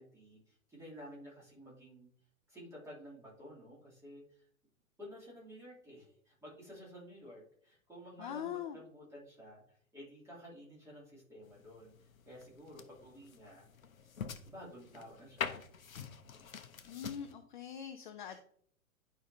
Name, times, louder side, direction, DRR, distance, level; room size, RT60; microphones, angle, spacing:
voice 1, 0.0-2.1 2.5-4.5 5.0-11.9 12.2-13.7 14.4-15.7, equal, 5° right, -6 dB, 2.8 m, -52 dB
voice 2, 8.2-8.8 16.9-18.4, left 9 dB, 35° left, 8 dB, 0.5 m, -42 dB
sound 1, 11.4-17.3, left 6 dB, 70° left, 0.8 m, -45 dB
11.0 x 5.2 x 2.7 m, 0.63 s
figure-of-eight pair, 110°, 43 cm